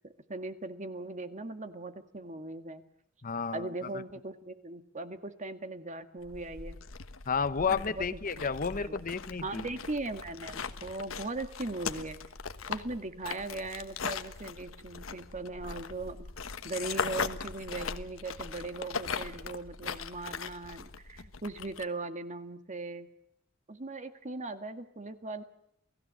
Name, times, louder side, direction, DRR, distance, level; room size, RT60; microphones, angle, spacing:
voice 1, 0.0-2.8 3.5-6.8 7.6-8.2 8.8-8.9 9.3-12.2 12.7-16.2 16.6-23.1 23.7-25.4, right 2 dB, 35° right, 9 dB, 1.9 m, -39 dB
voice 2, 3.2-3.7 7.3-9.7, left 5 dB, 45° left, 14 dB, 0.9 m, -31 dB
sound 1, 6.2-21.8, left 5 dB, 75° left, 1.3 m, -39 dB
29.0 x 17.5 x 7.7 m, 0.78 s
head